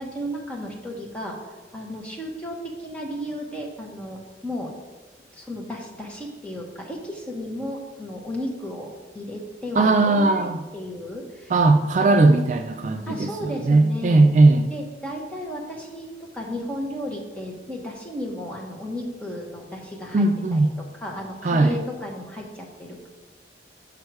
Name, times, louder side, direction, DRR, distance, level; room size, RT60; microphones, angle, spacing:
voice 1, 0.0-1.4 1.7-4.8 5.3-8.9 9.1-11.5 12.0-12.4 13.1-14.2 14.7-20.3 20.5-20.6 21.0-23.1, equal, 5° left, -2 dB, 1.1 m, -34 dB
voice 2, 9.8-10.6 11.5-14.7 20.1-20.7 21.4-21.8, right 2 dB, 45° right, 6 dB, 0.3 m, -18 dB
6.6 x 5.3 x 4.7 m, 1.2 s
head